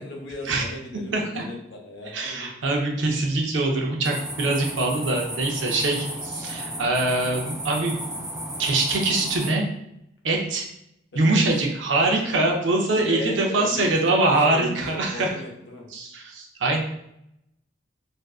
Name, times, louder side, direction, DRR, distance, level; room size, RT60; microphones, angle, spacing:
voice 1, 0.0-2.5 11.1-11.4 12.9-15.9, left 1 dB, 70° left, 0 dB, 0.6 m, -36 dB
voice 2, 1.1-1.4 2.1-7.9 8.6-9.7 10.2-10.6 11.1-15.3 15.9-16.8, right 2 dB, 80° right, 0 dB, 0.5 m, -23 dB
sound 1, 4.0-9.5, right 1 dB, 15° right, 0.5 m, -34 dB
2.5 x 2.3 x 2.3 m, 0.80 s
head